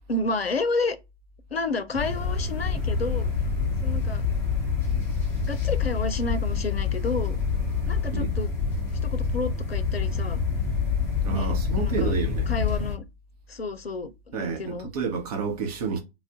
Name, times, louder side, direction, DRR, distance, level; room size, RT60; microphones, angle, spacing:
voice 1, 0.1-1.0 1.5-3.3 3.8-4.2 5.4-7.4 7.9-8.5 9.0-10.4 11.3-12.1 12.5-13.0 13.5-14.9, left 3 dB, 90° left, 0.5 m, -30 dB
sound 1, 1.9-12.9, left 5 dB, 5° left, 0.5 m, -26 dB
voice 2, 11.2-12.5 14.3-16.0, right 5 dB, 40° right, 0.8 m, -29 dB
2.4 x 2.1 x 3.5 m
figure-of-eight pair, 115°, 29 cm